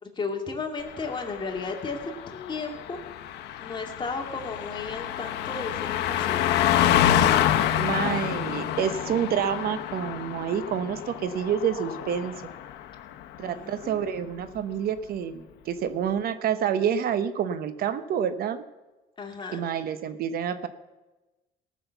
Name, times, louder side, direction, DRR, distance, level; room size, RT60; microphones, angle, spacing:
voice 1, 0.0-3.0 3.6-6.8 13.4-14.1 19.2-19.6, left 4 dB, 30° left, 1 dB, 2.3 m, -34 dB
Car passing by, 0.9-12.8 13.1-13.4, left 11 dB, 80° left, 0.9 m, -27 dB
voice 2, 7.8-12.3 13.4-18.6 19.5-20.7, right 8 dB, 65° right, 11 dB, 0.9 m, -28 dB
18.0 x 6.3 x 7.0 m, 1.1 s
cardioid pair, 110°, 17 cm